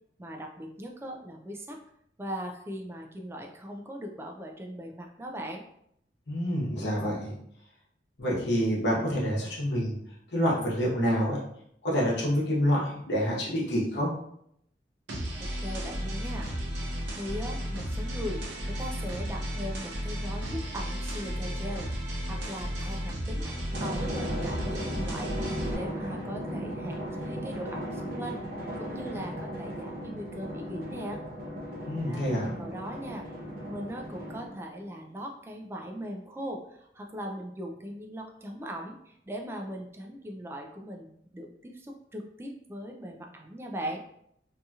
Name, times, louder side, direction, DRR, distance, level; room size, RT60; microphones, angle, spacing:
voice 1, 0.2-1.8 2.2-5.6 15.6-16.5 17.1-18.4 18.8-23.5 23.8-28.4 28.8-31.2 32.0-33.3 33.7-44.0, equal, 15° right, 2 dB, 0.3 m, -39 dB
voice 2, 6.3-7.3 8.2-10.0 10.3-11.4 11.8-14.1 31.8-32.5, equal, 75° left, -5 dB, 1.0 m, -27 dB
sound 1, 15.1-25.7, equal, 85° right, 0.7 m, -34 dB
Drum, 23.7-34.7, equal, 55° right, 0.8 m, -36 dB
2.7 x 2.7 x 2.3 m, 0.73 s
head